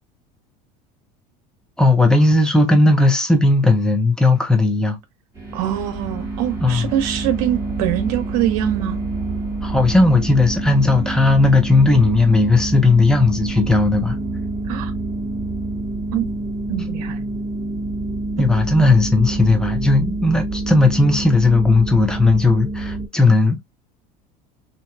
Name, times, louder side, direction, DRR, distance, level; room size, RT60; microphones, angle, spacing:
voice 1, 1.8-5.0 6.6-6.8 9.6-14.2 18.4-23.6, left 2 dB, 5° left, 0.9 m, -16 dB
sound 1, 5.3-23.1, right 2 dB, 15° right, 1.7 m, -27 dB
voice 2, 5.5-9.0 14.7-14.9 16.1-16.3 16.7-17.2, right 11 dB, 75° right, 0.9 m, -23 dB
3.0 x 2.7 x 2.3 m
supercardioid pair, 100°, 20 cm